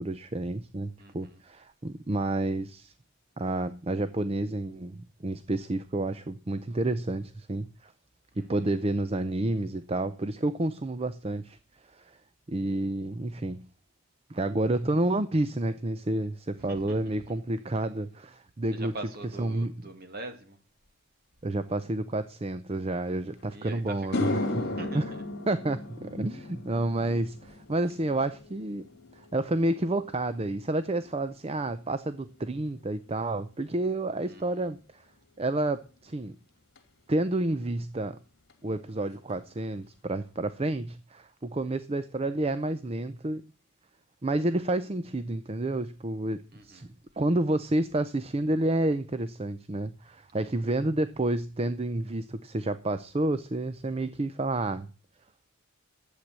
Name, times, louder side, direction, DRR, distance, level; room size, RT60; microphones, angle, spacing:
voice 1, 0.0-2.9 3.4-7.9 8.4-11.6 11.9-12.2 12.5-13.7 14.3-18.9 19.4-19.7 21.4-24.4 24.9-25.1 25.5-28.8 29.2-35.1 35.4-36.4 37.1-38.2 38.6-43.4 44.2-54.9, right 2 dB, 25° right, 0.5 m, -30 dB
voice 2, 1.0-1.4 8.5-8.7 16.6-17.4 18.7-20.6 23.5-25.2 34.3-34.7 46.5-46.9, right 2 dB, 45° right, 2.2 m, -43 dB
sound 1, 23.4-23.5 23.9-32.4 32.7-33.2 36.8-36.9 38.5-38.6 38.9-39.0 39.3-39.8, left 2 dB, 50° left, 2.4 m, -37 dB
11.5 x 8.2 x 7.6 m
head